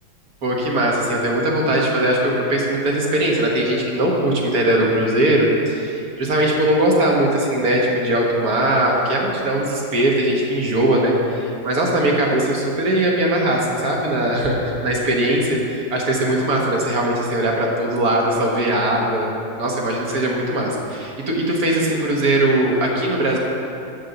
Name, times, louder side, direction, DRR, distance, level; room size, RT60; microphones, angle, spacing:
voice 1, 0.4-23.4, right 1 dB, 50° right, -2 dB, 1.6 m, -20 dB
7.7 x 6.7 x 6.9 m, 2.6 s
omnidirectional pair, 2.2 m